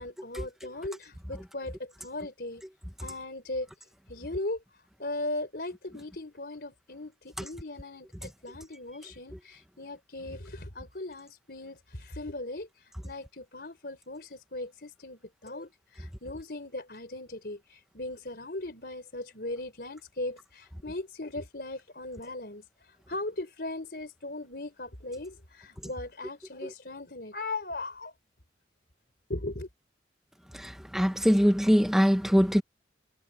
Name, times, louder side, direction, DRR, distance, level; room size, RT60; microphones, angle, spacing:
voice 1, 0.0-2.6 3.0-3.7 4.1-4.6 5.0-28.1 29.3-29.7, left 2 dB, 60° left, 4.5 m, -38 dB
voice 2, 30.5-32.6, equal, ahead, 1.3 m, -23 dB
head